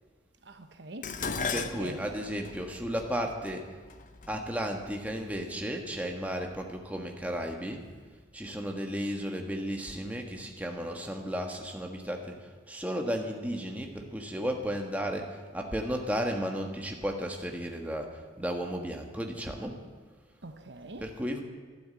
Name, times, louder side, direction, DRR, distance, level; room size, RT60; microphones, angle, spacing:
voice 1, 0.4-1.2 1.6-2.2 20.4-21.2, right 2 dB, 65° right, 1.1 m, -44 dB
Dishes pots and pans, 1.0-5.4 6.3-6.7 7.1-7.9 8.2-8.3, left 4 dB, 45° left, 0.8 m, -38 dB
voice 2, 1.5-3.7 4.3-7.8 8.3-19.8 21.0-21.4, equal, 10° right, 1.4 m, -34 dB
12.5 x 12.0 x 8.7 m
head